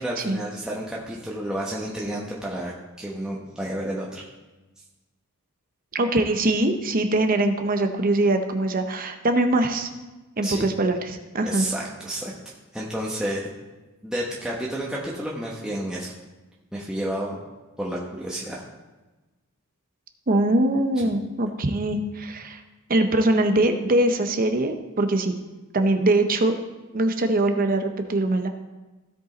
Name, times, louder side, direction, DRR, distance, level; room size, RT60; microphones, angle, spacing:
voice 1, 0.0-2.7 3.0-4.2 10.4-10.6 11.5-12.3 12.7-13.5 14.0-16.1 16.7-17.4 17.8-18.7 21.0-21.1, right 1 dB, 5° right, -5 dB, 1.0 m, -30 dB
voice 2, 5.9-9.9 10.4-11.7 20.3-22.6 22.9-25.3 25.7-26.6 26.9-28.5, right 2 dB, 40° right, 6 dB, 0.7 m, -22 dB
16.0 x 5.4 x 3.9 m, 1.2 s
head